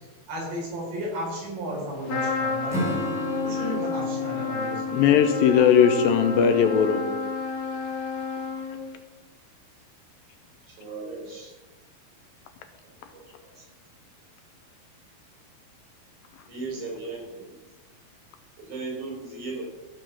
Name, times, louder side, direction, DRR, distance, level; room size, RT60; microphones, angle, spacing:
voice 1, 0.3-3.0 3.4-5.2, right 1 dB, 75° right, -4 dB, 6.4 m, -34 dB
Trumpet, 2.1-9.0, left 4 dB, 60° left, 2.3 m, -30 dB
Acoustic guitar / Strum, 2.7-6.2, left 1 dB, ahead, 1.1 m, -34 dB
voice 2, 4.9-7.1, left 8 dB, 80° left, 7 dB, 2.3 m, -19 dB
voice 3, 10.8-11.5 13.1-13.2 13.6-13.7 16.5-17.4 18.6-19.6, right 3 dB, 50° right, -2 dB, 5.3 m, -36 dB
14.5 x 5.5 x 7.3 m, 1.2 s
omnidirectional pair, 4.5 m